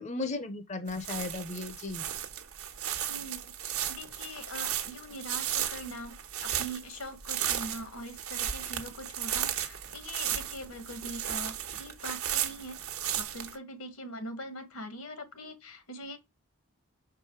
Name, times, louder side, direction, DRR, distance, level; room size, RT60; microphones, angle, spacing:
voice 1, 0.0-2.1, left 2 dB, 30° left, 0.6 m, -35 dB
sound 1, 0.9-13.6, right 10 dB, 80° right, 1.2 m, -35 dB
voice 2, 3.1-3.5 3.9-12.8 13.1-16.2, equal, 85° left, 1.8 m, -42 dB
6.0 x 4.7 x 4.8 m
head